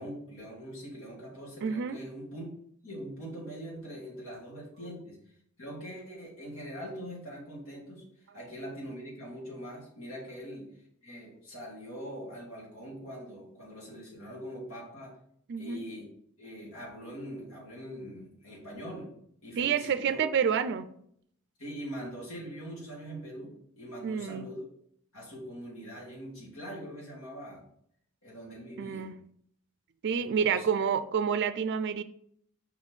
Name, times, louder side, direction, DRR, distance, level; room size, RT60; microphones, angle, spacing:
voice 1, 0.0-2.5 2.8-5.2 5.6-8.1 8.3-10.7 11.0-15.1 15.6-16.1 16.4-19.1 19.4-20.2 21.6-24.6 25.1-27.6 28.2-29.1 30.0-30.7, equal, 80° left, -3 dB, 2.8 m, -42 dB
voice 2, 1.6-2.0 15.5-15.8 19.6-20.9 24.0-24.5 28.8-29.2 30.0-32.0, right 7 dB, 55° right, 12 dB, 0.4 m, -28 dB
5.5 x 4.2 x 4.7 m, 0.68 s
head